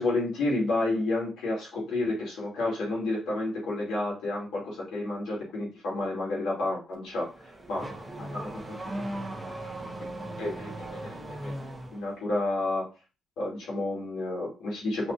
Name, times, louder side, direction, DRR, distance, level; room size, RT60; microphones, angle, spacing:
voice 1, 0.0-7.3 7.7-7.9 8.2-9.0 10.4-11.5 11.9-12.9 13.4-15.1, left 2 dB, 85° left, -5 dB, 2.5 m, -30 dB
Car / Accelerating revving vroom, 7.1-12.1, right 1 dB, 10° right, 1.1 m, -38 dB
5.5 x 3.3 x 2.6 m, 0.31 s
cardioid pair, 90°, 0 cm